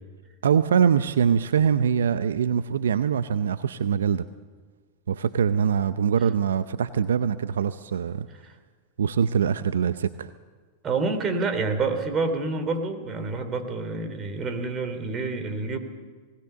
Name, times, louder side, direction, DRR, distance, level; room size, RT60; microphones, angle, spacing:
voice 1, 0.4-4.3 5.1-8.3 9.0-10.3, right 7 dB, 80° right, 13 dB, 0.6 m, -23 dB
voice 2, 10.8-15.8, right 3 dB, 30° right, 8 dB, 3.4 m, -28 dB
20.0 x 19.5 x 7.0 m, 1.5 s
hypercardioid pair, 100°, 0 cm